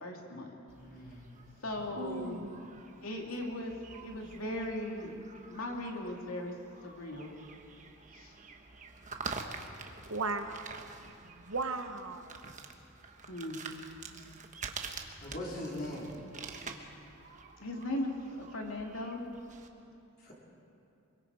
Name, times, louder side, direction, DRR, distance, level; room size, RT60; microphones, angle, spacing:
voice 1, 0.0-0.5 1.6-2.4 3.0-3.8 4.0-5.1 5.5-6.5 6.8-7.3 8.1-8.3 13.3-13.9 17.6-19.3, left 1 dB, 80° left, 1 dB, 2.5 m, -38 dB
sound 1, 0.7-19.7, right 4 dB, 35° right, 1.2 m, -47 dB
voice 2, 0.8-1.4 1.8-1.9 15.2-16.2 20.2-20.3, left 1 dB, 45° left, -4 dB, 4.6 m, -41 dB
voice 3, 1.9-2.6 10.1-10.9 11.2-12.5, right 3 dB, 65° right, 7 dB, 1.2 m, -37 dB
24.5 x 22.5 x 4.8 m, 2.7 s
head